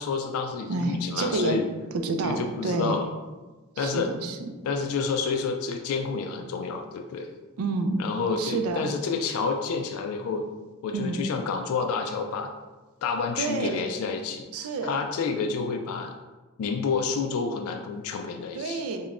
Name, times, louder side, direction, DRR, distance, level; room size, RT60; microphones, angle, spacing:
voice 1, 0.0-1.7 2.2-3.1 3.8-4.1 4.6-7.3 8.0-10.5 10.8-12.5 13.0-16.1 16.6-18.8, left 5 dB, 80° left, 4 dB, 0.3 m, -29 dB
voice 2, 0.7-1.6 2.0-3.0 3.8-4.5 7.6-8.0 8.4-8.9 10.9-11.2 13.4-13.9 14.5-15.0 18.5-19.1, right 3 dB, 80° right, 6 dB, 0.4 m, -29 dB
5.2 x 2.2 x 2.4 m, 1.2 s
head